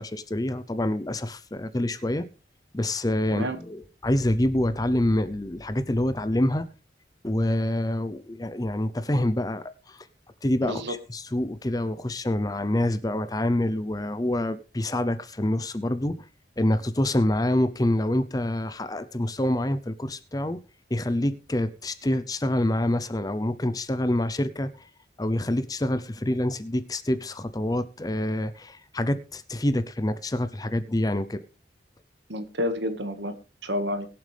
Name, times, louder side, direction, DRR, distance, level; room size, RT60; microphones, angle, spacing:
voice 1, 0.0-2.3 2.7-6.7 7.2-10.1 10.4-16.3 16.6-20.6 20.9-24.7 25.2-31.4, left 1 dB, 20° left, 0.7 m, -26 dB
voice 2, 10.6-11.0 32.3-33.3 33.6-34.1, equal, 80° right, 1.9 m, -29 dB
22.5 x 7.5 x 3.5 m
head